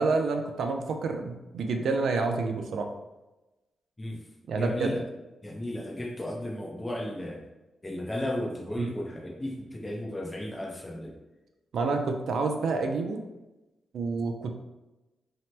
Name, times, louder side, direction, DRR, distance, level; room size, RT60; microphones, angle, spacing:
voice 1, 0.0-2.9 4.5-4.9 8.8-8.9 11.7-13.2 13.9-14.6, right 4 dB, 75° right, 5 dB, 0.3 m, -28 dB
voice 2, 4.5-5.0 5.4-7.5 7.8-11.2, left 1 dB, 15° left, -1 dB, 0.5 m, -34 dB
2.8 x 2.1 x 3.1 m, 1.0 s
cardioid pair, 115°, 0 cm